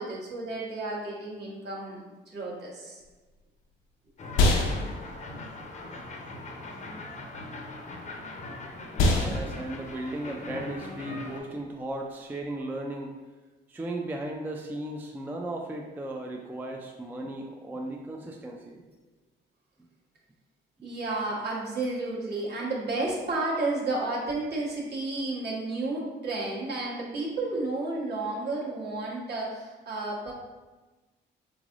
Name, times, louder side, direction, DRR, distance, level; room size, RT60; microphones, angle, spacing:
voice 1, 0.0-2.0 2.3-3.0 20.8-30.3, right 2 dB, 55° right, -5 dB, 1.2 m, -32 dB
sound 1, 3.0-12.6, left 2 dB, 85° left, 0.6 m, -30 dB
sound 2, 4.2-11.4, left 2 dB, 35° left, 0.6 m, -41 dB
voice 2, 9.1-13.2 13.7-18.8, right 1 dB, 10° right, 1 dB, 0.3 m, -36 dB
3.6 x 3.2 x 2.5 m, 1.2 s
cardioid pair, 90°, 20 cm